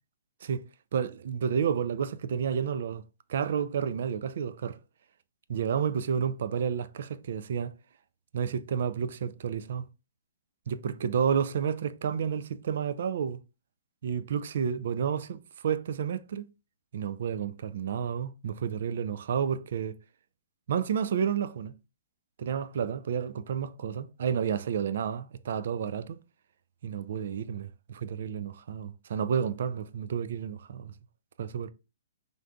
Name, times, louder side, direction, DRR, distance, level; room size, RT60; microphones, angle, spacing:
voice 1, 0.4-3.0 3.3-4.8 5.5-7.7 8.3-9.9 10.7-13.4 14.0-16.5 16.9-20.0 20.7-21.7 22.4-26.2 26.8-27.7 27.9-30.9 31.4-31.7, right 7 dB, 65° right, 0.3 m, -30 dB
3.5 x 2.5 x 2.2 m
hypercardioid pair, 145°, 0 cm